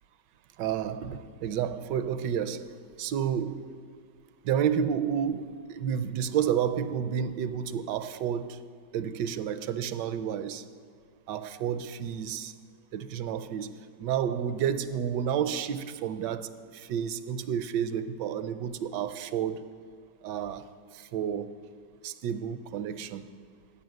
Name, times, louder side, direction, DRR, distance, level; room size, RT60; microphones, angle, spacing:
voice 1, 0.6-2.7 3.0-3.7 4.4-8.6 8.9-10.6 11.3-12.5 12.9-19.7 20.2-20.6 20.9-21.5 22.0-23.3, right 8 dB, 80° right, 1.2 m, -30 dB
14.5 x 5.7 x 9.2 m
omnidirectional pair, 1.9 m